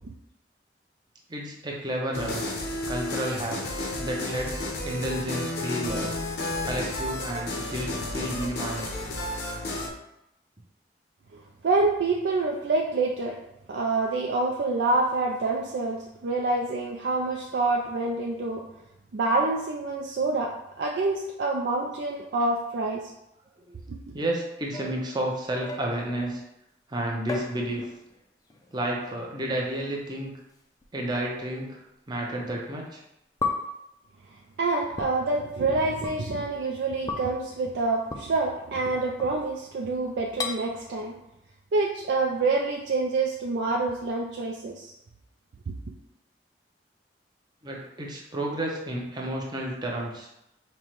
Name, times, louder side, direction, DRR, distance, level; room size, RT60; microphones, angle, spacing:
voice 1, 1.3-2.4 2.9-6.1 6.6-8.9 9.6-9.7 23.7-23.8 24.1-26.4 26.9-27.8 28.7-30.3 30.9-31.8 32.1-33.0 47.6-50.3, right 1 dB, 25° right, -1 dB, 0.6 m, -31 dB
sound 1, 2.1-9.9, left 1 dB, 65° left, 0.6 m, -32 dB
voice 2, 11.3-13.4 13.7-18.6 19.1-20.5 20.8-23.0 23.9-24.1 34.6-41.2 41.7-44.9, right 3 dB, 75° right, -1 dB, 0.4 m, -27 dB
sound 2, 24.7-26.3 27.3-28.2 28.5-28.9 29.8-29.9 30.8-30.9 32.5-32.6 33.4-33.9 35.0-35.1 36.0-36.2 37.1-37.4 38.1-38.2 39.2-39.6 40.4-40.5, left 3 dB, 20° left, 0.3 m, -34 dB
5.3 x 2.1 x 3.0 m, 0.83 s
head